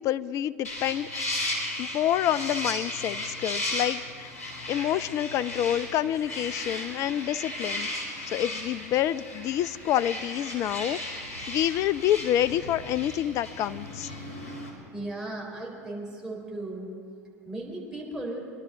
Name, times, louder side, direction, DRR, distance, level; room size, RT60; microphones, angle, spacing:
voice 1, 0.0-1.4 1.8-4.3 4.7-7.9 8.3-11.2 11.5-14.1, left 11 dB, 40° left, 15 dB, 0.4 m, -28 dB
sound 1, 0.6-14.7, left 1 dB, 70° left, 3.3 m, -35 dB
voice 2, 14.9-16.9 17.5-18.4, right 2 dB, 5° right, -2 dB, 4.1 m, -36 dB
23.5 x 11.5 x 3.9 m, 2.4 s
figure-of-eight pair, 75°, 8 cm